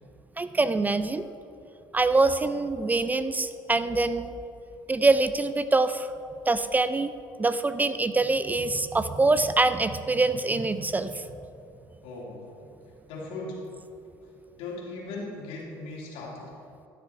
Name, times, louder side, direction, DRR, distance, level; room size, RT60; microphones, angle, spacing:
voice 1, 0.4-1.3 1.9-4.3 4.9-6.1 6.5-7.1 7.4-11.3, right 3 dB, 15° right, 12 dB, 0.4 m, -24 dB
voice 2, 12.0-12.5 13.1-13.7 14.5-16.6, left 2 dB, 75° left, -3 dB, 2.8 m, -38 dB
13.5 x 6.9 x 4.6 m, 2.7 s
supercardioid pair, 85°, 10 cm